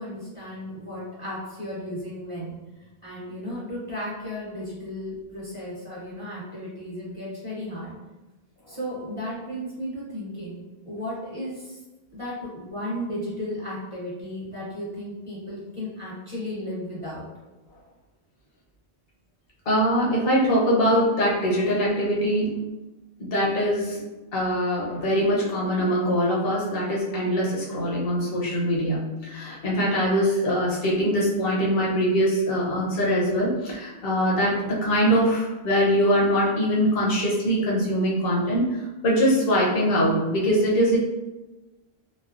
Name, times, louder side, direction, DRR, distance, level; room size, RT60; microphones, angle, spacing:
voice 1, 0.0-7.9 8.7-11.8 12.1-17.2, left 1 dB, 35° right, -8 dB, 0.8 m, -34 dB
voice 2, 19.7-22.5 23.2-24.0 24.3-41.0, equal, 70° left, -4 dB, 0.9 m, -23 dB
3.1 x 2.0 x 2.4 m, 1.1 s
omnidirectional pair, 1.0 m